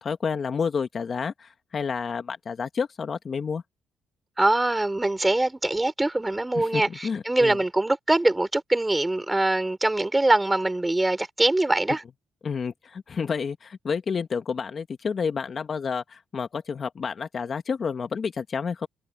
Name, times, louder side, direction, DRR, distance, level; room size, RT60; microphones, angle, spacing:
voice 1, 0.0-3.6 6.5-7.6 12.4-18.9, left 6 dB, 45° left, 1.5 m, -30 dB
voice 2, 4.4-12.0, right 2 dB, 15° right, 6.0 m, -23 dB
cardioid pair, 90°, 0 cm